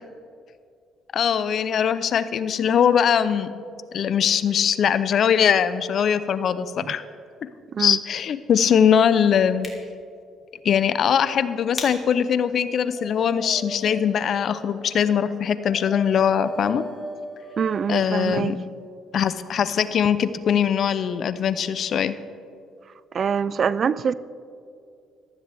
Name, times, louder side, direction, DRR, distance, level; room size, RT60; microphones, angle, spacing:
voice 1, 1.1-3.5 3.9-7.0 7.8-9.7 10.6-16.8 17.9-18.6 19.1-22.2, left 8 dB, 60° left, 0.6 m, -21 dB
sound 1, 9.4-14.4, left 2 dB, 25° left, 3.0 m, -42 dB
Dog, 12.5-18.1, right 1 dB, 20° right, 1.1 m, -38 dB
voice 2, 17.6-18.5 23.1-24.1, right 7 dB, 50° right, 0.4 m, -24 dB
15.0 x 13.5 x 3.5 m
supercardioid pair, 65°, 0 cm